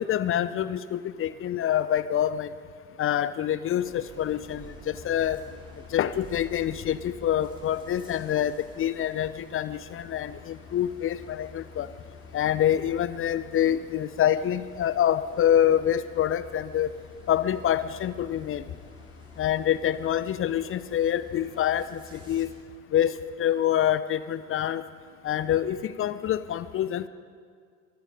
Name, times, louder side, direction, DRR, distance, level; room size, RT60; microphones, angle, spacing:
voice 1, 0.0-2.5 3.0-5.4 5.9-11.9 12.3-16.9 17.3-18.6 19.4-22.5 22.9-23.1 23.4-24.8 25.2-27.1, left 10 dB, 35° left, 15 dB, 0.5 m, -26 dB
sound 1, 3.8-22.5, left 2 dB, 10° right, 3.8 m, -49 dB
23.5 x 10.5 x 5.1 m, 2.1 s
figure-of-eight pair, 55°, 40 cm